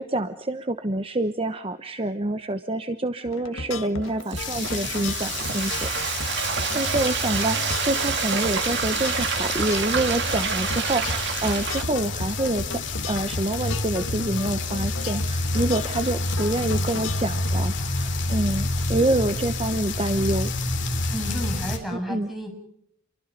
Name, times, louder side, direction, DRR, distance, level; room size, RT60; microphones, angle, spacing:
voice 1, 0.0-6.1 6.7-12.8 13.1-20.5 21.9-22.3, right 1 dB, 25° right, 9 dB, 1.0 m, -27 dB
sound 1, 3.3-17.6, left 3 dB, 75° left, 1.6 m, -35 dB
Frying (food), 3.9-11.8, right 7 dB, 55° right, 2.2 m, -28 dB
sound 2, 4.4-21.8, left 2 dB, 55° left, 3.7 m, -29 dB
voice 2, 21.1-22.5, equal, ahead, 2 dB, 7.4 m, -32 dB
28.5 x 24.0 x 5.2 m, 0.70 s
head